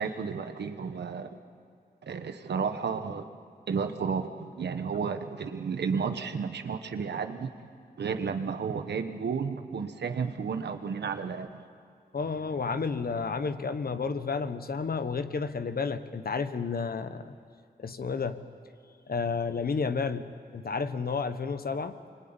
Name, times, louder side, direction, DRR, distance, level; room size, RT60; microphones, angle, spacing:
voice 1, 0.0-1.4 2.0-3.3 3.7-7.5 8.0-11.6, right 6 dB, 90° right, 8 dB, 1.3 m, -32 dB
voice 2, 12.1-17.3 17.8-18.4 19.1-22.0, left 5 dB, 60° left, 10 dB, 1.3 m, -31 dB
25.5 x 23.5 x 8.9 m, 2.4 s
cardioid pair, 60°, 17 cm